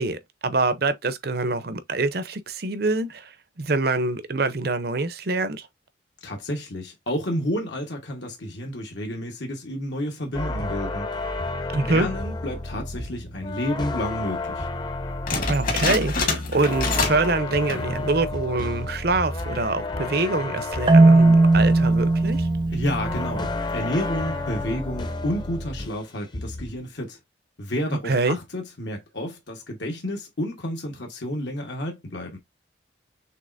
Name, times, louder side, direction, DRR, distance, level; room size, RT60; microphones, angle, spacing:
voice 1, 0.0-5.7 11.7-12.1 15.5-22.5 28.0-28.4, right 3 dB, 55° right, 0.7 m, -25 dB
voice 2, 6.2-11.1 11.9-14.7 22.7-27.2 27.6-32.4, left 1 dB, 65° left, 1.4 m, -30 dB
sound 1, 10.3-26.1 26.3-26.8, left 2 dB, 25° left, 0.7 m, -31 dB
sound 2, 15.3-17.3 17.6-18.0 18.4-18.5 19.2-19.6, left 4 dB, 45° left, 1.4 m, -27 dB
Marimba xylophone, 20.9-23.9, right 2 dB, 25° right, 0.3 m, -18 dB
6.6 x 3.0 x 2.6 m
head